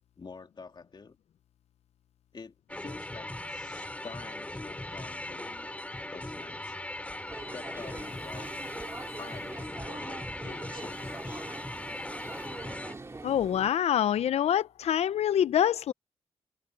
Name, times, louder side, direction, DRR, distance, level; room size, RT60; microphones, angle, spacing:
voice 1, 0.2-1.2 2.3-5.7 6.1-6.8 7.5-8.5 9.2-11.5, left 4 dB, 40° left, 2.3 m, -47 dB
sound 1, 2.7-12.9, left 1 dB, 10° left, 3.1 m, -39 dB
sound 2, 7.0-13.9, right 7 dB, 65° right, 5.6 m, -60 dB
sound 3, 7.3-13.7, right 3 dB, 25° right, 2.0 m, -44 dB
voice 2, 13.2-15.9, left 10 dB, 75° left, 0.6 m, -25 dB
cardioid pair, 75°, 11 cm